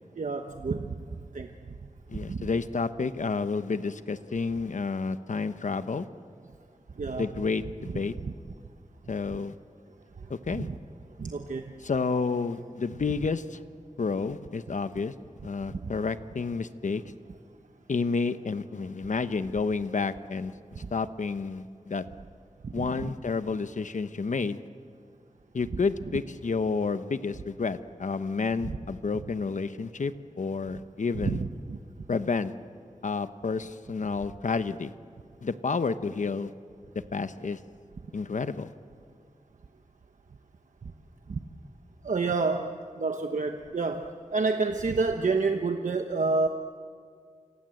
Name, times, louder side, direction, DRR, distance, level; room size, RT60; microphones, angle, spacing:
voice 1, 0.2-0.9 1.3-1.5 2.3-2.5 7.0-7.3 8.2-8.3 10.5-10.7 11.2-11.7 15.7-15.9 20.8-20.9 22.6-23.1 31.2-31.8 41.3-41.4 42.0-46.5, right 4 dB, 85° right, 5 dB, 1.1 m, -29 dB
voice 2, 2.1-6.1 7.1-8.1 9.1-9.5 10.3-10.7 11.8-13.6 14.0-15.1 15.4-17.0 17.9-20.5 20.9-22.0 22.7-24.6 25.5-31.4 32.1-32.5 33.0-34.9 35.4-36.5 37.1-37.6 38.1-38.7, left 4 dB, 80° left, 11 dB, 1.0 m, -30 dB
29.0 x 26.5 x 7.9 m, 2.1 s
wide cardioid pair, 90°, 13 cm